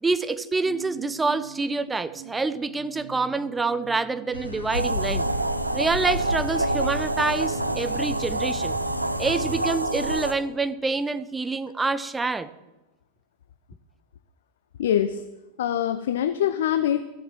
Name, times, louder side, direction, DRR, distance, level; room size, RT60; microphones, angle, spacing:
voice 1, 0.0-5.3 5.7-8.8 9.2-12.5, right 3 dB, 10° right, 0.6 m, -27 dB
sound 1, 0.6-8.8, right 8 dB, 40° right, 1.9 m, -44 dB
sound 2, 4.3-9.6, left 1 dB, 85° left, 1.6 m, -37 dB
sound 3, 4.7-10.3, right 2 dB, 85° right, 0.7 m, -27 dB
voice 2, 14.8-15.2 15.6-17.0, left 10 dB, 60° left, 0.6 m, -24 dB
14.0 x 7.4 x 7.4 m
figure-of-eight pair, 90°, 0 cm